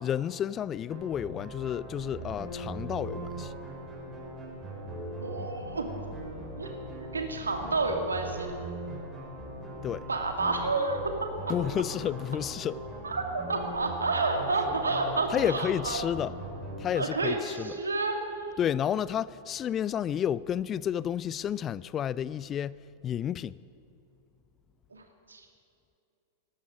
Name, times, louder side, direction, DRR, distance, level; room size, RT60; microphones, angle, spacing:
voice 1, 0.0-3.5 9.8-10.1 11.5-12.8 15.3-16.3 16.8-17.7 18.6-22.7 23.0-23.6, left 9 dB, 30° left, 0.3 m, -31 dB
sound 1, 0.9-16.9, right 1 dB, 15° right, 5.2 m, -40 dB
voice 2, 5.2-5.9 6.6-6.7 7.1-8.5 10.1-11.2 11.5-11.6 13.0-16.1 16.9-18.4 24.9-25.5, right 3 dB, 80° right, 2.1 m, -30 dB
18.5 x 13.0 x 5.9 m
figure-of-eight pair, 95°, 0 cm